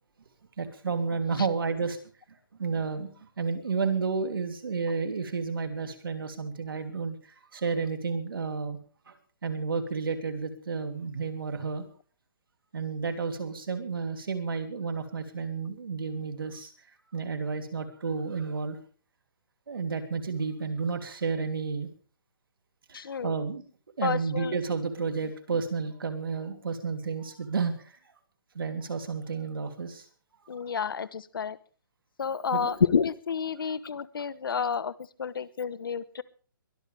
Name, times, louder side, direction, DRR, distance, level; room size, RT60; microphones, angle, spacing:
voice 1, 0.6-2.0 2.6-7.2 7.5-8.8 9.1-9.2 9.4-11.8 12.7-16.7 17.1-18.8 19.7-21.9 22.9-23.6 24.0-27.7 28.5-30.0 32.5-32.7, right 5 dB, 80° right, 7 dB, 3.1 m, -31 dB
voice 2, 22.9-23.3 24.0-24.6 30.5-31.6 32.2-34.9 35.2-36.2, left 6 dB, 75° left, 17 dB, 1.0 m, -29 dB
22.5 x 13.5 x 3.4 m, 0.39 s
hypercardioid pair, 160°, 12 cm